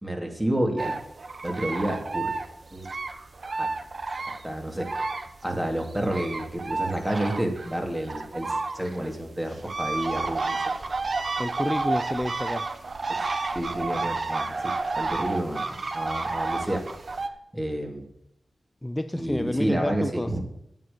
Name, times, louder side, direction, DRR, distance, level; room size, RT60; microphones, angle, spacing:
voice 1, 0.0-1.0 1.4-2.3 2.7-2.8 3.6-3.7 4.3-4.9 5.4-10.6 13.1-13.2 13.5-15.7 15.9-16.9 17.5-18.0 19.1-20.4, right 1 dB, 15° right, 2 dB, 2.8 m, -30 dB
sound 1, 0.8-5.5 5.8-17.3, right 3 dB, 55° right, 1.0 m, -31 dB
voice 2, 11.4-12.7 18.8-20.4, left 1 dB, 15° left, 9 dB, 0.6 m, -29 dB
9.3 x 9.2 x 7.0 m, 0.76 s
cardioid pair, 65°, 0 cm